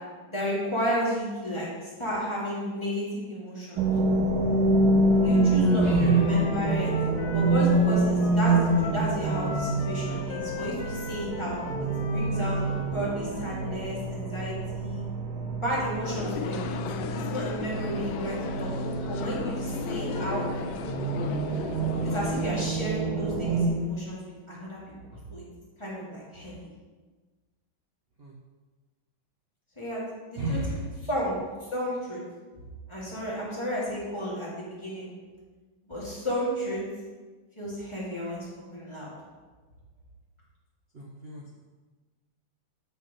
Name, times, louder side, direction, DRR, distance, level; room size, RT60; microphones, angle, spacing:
voice 1, 0.3-3.9 5.2-6.9 7.3-11.6 12.0-12.6 12.9-15.0 15.5-16.8 17.1-18.7 19.1-20.4 22.0-24.2 24.5-25.4 25.8-26.7 29.8-30.6 31.0-31.4 31.7-32.2 32.9-35.2 35.8-36.8 37.6-39.1, equal, 15° left, -7 dB, 2.4 m, -32 dB
sound 1, 3.8-23.7, right 2 dB, 75° right, 2.0 m, -27 dB
Wind instrument woodwind instrument, 5.1-13.5, left 3 dB, 55° left, 1.3 m, -38 dB
voice 2, 5.8-6.2 28.2-28.3 30.4-30.9 40.9-41.4, right 2 dB, 55° right, -3 dB, 0.6 m, -31 dB
sound 2, 16.0-22.5, left 8 dB, 75° left, 1.0 m, -36 dB
7.5 x 5.9 x 5.6 m, 1.3 s
omnidirectional pair, 2.3 m